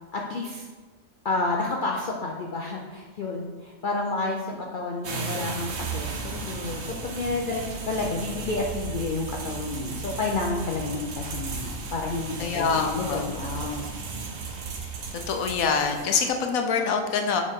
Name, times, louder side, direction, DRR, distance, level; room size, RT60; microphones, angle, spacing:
voice 1, 0.1-0.7 1.2-13.8, left 3 dB, 55° left, -1 dB, 0.6 m, -30 dB
sound 1, 5.0-16.5, right 4 dB, 60° right, 1.1 m, -35 dB
voice 2, 12.4-13.2 13.6-13.9 14.8-14.9 15.3-17.4, left 5 dB, 85° left, 4 dB, 1.2 m, -25 dB
6.5 x 4.8 x 3.6 m, 1.3 s
omnidirectional pair, 1.4 m